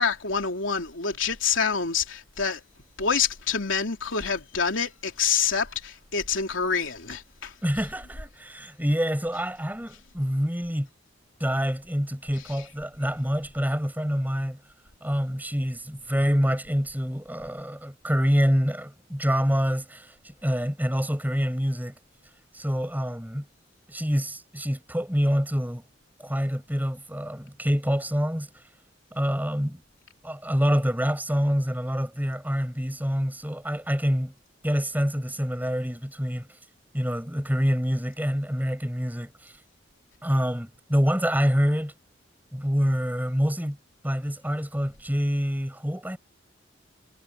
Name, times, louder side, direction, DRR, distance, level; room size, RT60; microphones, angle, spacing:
voice 1, 0.0-2.6 3.0-7.5 12.4-12.7, left 6 dB, 75° left, 3.3 m, -27 dB
voice 2, 7.6-10.9 11.4-14.6 15.0-21.9 22.5-23.4 23.9-25.8 26.2-28.5 29.1-29.8 30.2-34.3 34.6-36.5 36.9-39.5 40.2-41.9 42.5-43.8 44.0-46.2, equal, 10° right, 7.6 m, -26 dB
head